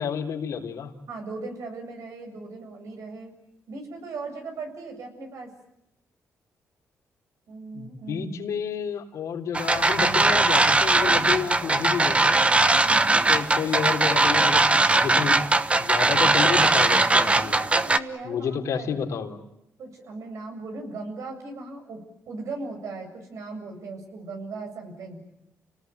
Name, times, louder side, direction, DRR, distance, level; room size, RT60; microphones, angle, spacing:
voice 1, 0.0-0.9 7.7-12.4 13.3-15.5 15.8-17.5 18.2-19.4, left 7 dB, 75° left, 3 dB, 3.7 m, -30 dB
voice 2, 1.1-3.3 3.7-5.5 7.5-8.6 12.8-13.3 17.4-18.9 19.8-22.0 22.3-25.2, right 3 dB, 70° right, 4 dB, 7.7 m, -38 dB
sound 1, 9.5-18.0, right 2 dB, 20° right, 1.2 m, -20 dB
29.5 x 19.0 x 9.4 m, 0.84 s
cardioid pair, 95°, 5 cm